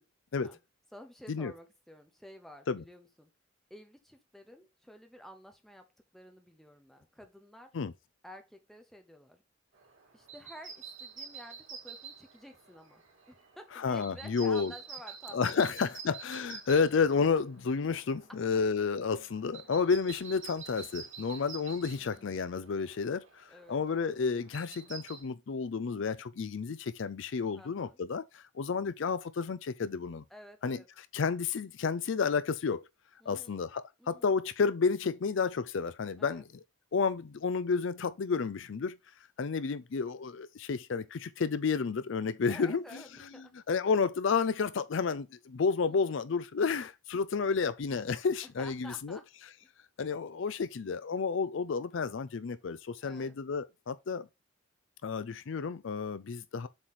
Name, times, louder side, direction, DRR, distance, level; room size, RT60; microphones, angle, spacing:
voice 1, 0.9-3.3 3.7-5.9 6.1-7.8 8.2-9.4 10.1-13.0 13.3-16.2 21.9-22.3 23.5-23.8 27.5-28.0 30.3-30.9 33.2-33.6 34.0-34.4 36.2-36.4 42.5-43.5 45.8-46.3 48.4-49.3 49.6-49.7 53.0-53.4, equal, ahead, 0.9 m, -52 dB
sound 1, 9.7-25.2, right 6 dB, 80° right, 3.6 m, -49 dB
voice 2, 13.8-14.7 15.3-30.2 30.6-30.8 31.1-32.8 33.3-36.4 36.9-39.0 39.4-42.8 43.7-49.2 50.0-54.3 55.0-56.7, left 5 dB, 65° left, 0.4 m, -31 dB
7.4 x 3.2 x 4.2 m
head